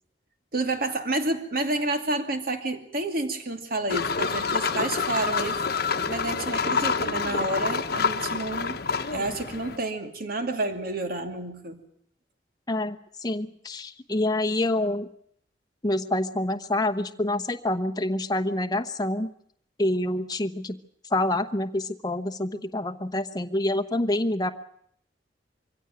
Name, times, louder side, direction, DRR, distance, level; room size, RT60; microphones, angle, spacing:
voice 1, 0.5-8.8 9.1-11.8, right 2 dB, 55° right, 6 dB, 2.6 m, -30 dB
sound 1, 3.9-9.8, left 5 dB, 55° left, 1.1 m, -27 dB
voice 2, 12.7-15.1 15.8-19.3 19.8-20.8 21.1-24.5, left 1 dB, 20° left, 7 dB, 1.0 m, -27 dB
23.5 x 16.5 x 9.2 m, 0.69 s
head